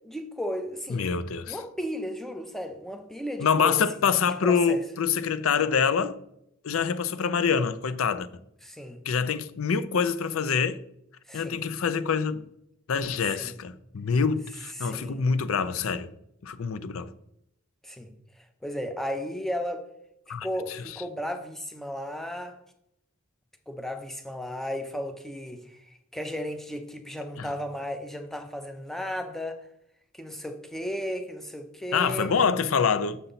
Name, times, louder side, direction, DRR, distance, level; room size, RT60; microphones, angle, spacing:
voice 1, 0.0-1.0 1.5-4.8 8.6-9.0 11.3-11.6 13.3-13.6 14.8-15.3 17.8-18.1 18.6-19.8 20.4-22.6 23.7-25.8 26.1-29.6 30.1-32.3, equal, ahead, 0.7 m, -34 dB
voice 2, 0.9-1.6 3.4-6.2 6.6-8.3 9.1-10.8 11.3-12.5 12.9-16.1 16.4-17.1 20.3-20.8 27.4-27.5 31.9-33.2, left 6 dB, 85° left, 0.5 m, -26 dB
6.8 x 5.7 x 4.0 m
head